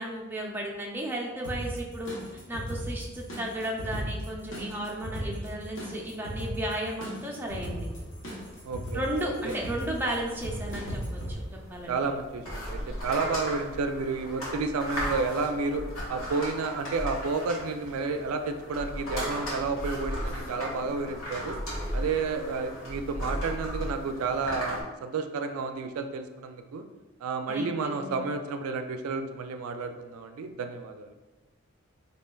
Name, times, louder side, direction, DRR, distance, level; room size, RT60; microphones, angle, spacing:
voice 1, 0.0-2.1 2.5-7.9 8.9-11.2 11.5-12.0 27.5-28.2, right 1 dB, 10° right, -2 dB, 0.4 m, -34 dB
sound 1, 1.4-11.3, equal, 60° left, 0.9 m, -37 dB
sound 2, 7.4-24.8, equal, 80° left, 1.2 m, -37 dB
voice 2, 8.6-9.1 11.9-15.8 16.1-21.6 21.9-26.8 27.2-31.1, right 4 dB, 90° right, 7 dB, 0.3 m, -31 dB
4.3 x 2.8 x 2.3 m, 1.2 s
head